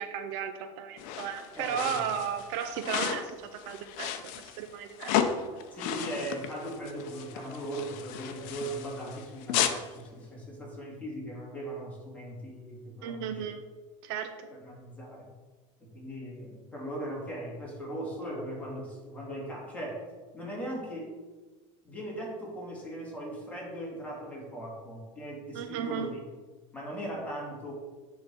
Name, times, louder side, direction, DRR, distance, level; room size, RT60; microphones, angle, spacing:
voice 1, 0.0-4.1 4.4-5.2 13.0-13.6 14.0-14.3 25.5-26.1, right 8 dB, 60° right, 8 dB, 0.6 m, -34 dB
sound 1, 1.0-9.8, left 9 dB, 55° left, 0.7 m, -34 dB
voice 2, 1.6-2.0 5.7-13.4 14.6-15.3 15.8-20.1 20.3-21.1 21.8-26.2 26.7-27.7, right 1 dB, 10° left, -4 dB, 2.1 m, -39 dB
9.8 x 3.8 x 4.3 m, 1.3 s
supercardioid pair, 150°, 16 cm